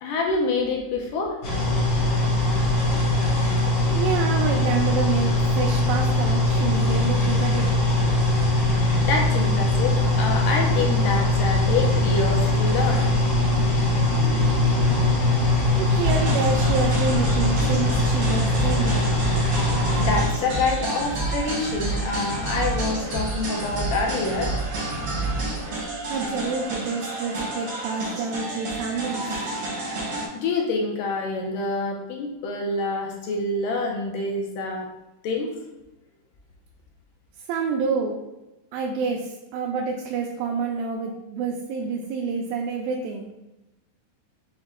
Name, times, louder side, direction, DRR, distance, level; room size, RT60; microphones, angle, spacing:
voice 1, 0.0-1.4 9.0-13.1 14.1-14.2 19.9-24.6 30.3-34.9 35.2-35.5, left 3 dB, 80° left, 1 dB, 2.0 m, -26 dB
sound 1, 1.4-20.2, left 2 dB, 55° left, 1.2 m, -21 dB
voice 2, 3.9-7.7 15.8-19.1 26.1-29.5 37.5-38.2 38.7-43.3, right 5 dB, 85° right, 0 dB, 2.3 m, -28 dB
sound 2, 16.0-30.3, right 2 dB, 65° right, 1.3 m, -29 dB
6.2 x 2.2 x 3.5 m, 0.96 s
omnidirectional pair, 4.1 m